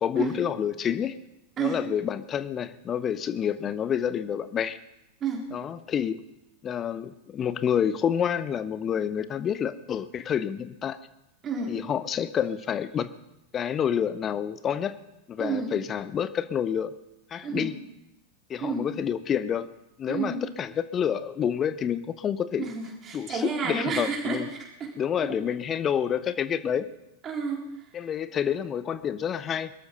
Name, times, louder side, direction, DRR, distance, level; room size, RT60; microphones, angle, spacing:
voice 1, 0.0-1.2 1.6-4.8 5.5-6.3 6.6-11.0 11.7-13.1 13.5-15.0 15.3-16.9 17.3-17.7 18.5-19.7 20.0-22.7 23.1-23.4 23.7-24.5 25.0-26.9 27.9-29.7, left 8 dB, 25° left, 15 dB, 0.6 m, -28 dB
voice 2, 11.4-11.7 15.4-15.7 17.4-17.7 18.6-18.9 20.1-20.4 22.6-25.4 27.2-27.9, right 5 dB, 25° right, -1 dB, 3.9 m, -31 dB
21.5 x 13.0 x 4.1 m, 0.88 s
figure-of-eight pair, 90°, 0 cm